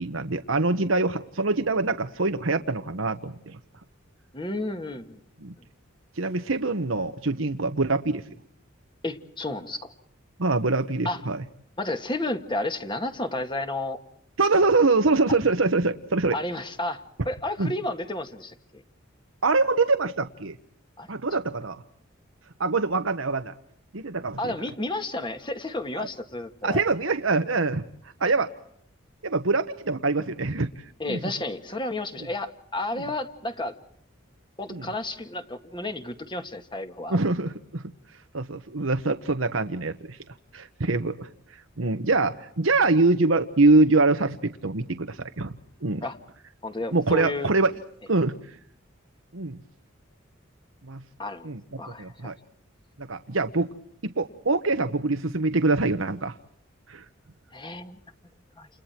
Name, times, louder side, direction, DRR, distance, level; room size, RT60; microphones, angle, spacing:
voice 1, 0.0-3.6 5.4-5.5 6.1-8.2 10.4-11.4 14.4-16.4 17.6-17.7 19.4-20.6 21.1-21.8 22.6-23.5 23.9-24.5 25.9-26.1 26.6-27.8 28.2-28.5 29.2-31.2 32.9-33.0 34.7-34.9 37.1-37.9 38.3-40.2 40.5-45.5 45.8-46.0 46.9-47.7 48.1-48.5 49.3-49.6 50.8-51.0 51.4-51.6 52.0-52.3 53.0-53.7 54.0-56.4 56.9-57.0, right 3 dB, 80° right, 8 dB, 1.3 m, -24 dB
voice 2, 4.3-5.2 9.0-9.9 11.0-11.2 11.8-14.0 15.3-15.4 16.3-18.8 21.0-21.1 24.4-26.8 31.0-33.7 34.6-37.2 46.0-46.2 46.6-47.5 51.2-51.5 51.8-52.3 57.5-58.0 58.6-58.7, left 2 dB, 25° left, 7 dB, 2.0 m, -32 dB
30.0 x 29.5 x 4.5 m, 0.65 s
head